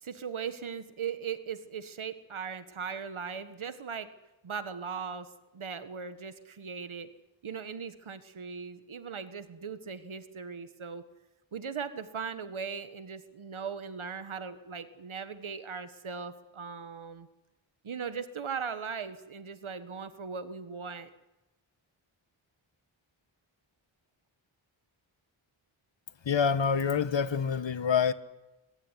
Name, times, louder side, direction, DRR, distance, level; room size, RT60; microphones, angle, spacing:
voice 1, 0.0-4.1 4.4-7.1 7.4-11.0 11.5-17.3 17.8-21.1, right 6 dB, 80° right, 11 dB, 1.6 m, -39 dB
voice 2, 26.2-28.1, left 6 dB, 65° left, 13 dB, 1.4 m, -26 dB
23.0 x 22.5 x 9.9 m, 1.0 s
wide cardioid pair, 65°, 48 cm